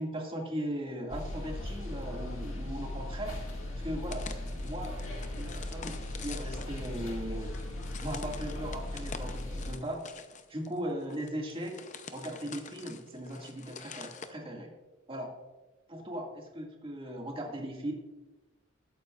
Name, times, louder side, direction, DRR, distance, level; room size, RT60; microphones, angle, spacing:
voice 1, 0.0-3.4 3.8-4.9 5.4-7.5 8.0-10.0 10.5-11.7 12.1-14.7 15.1-15.3 15.9-17.9, right 1 dB, 25° right, 0 dB, 2.1 m, -38 dB
sound 1, 1.1-9.7, left 1 dB, 80° left, 2.1 m, -38 dB
sound 2, 4.1-14.3, left 6 dB, 40° left, 0.7 m, -47 dB
20.0 x 9.3 x 2.5 m, 1.2 s
head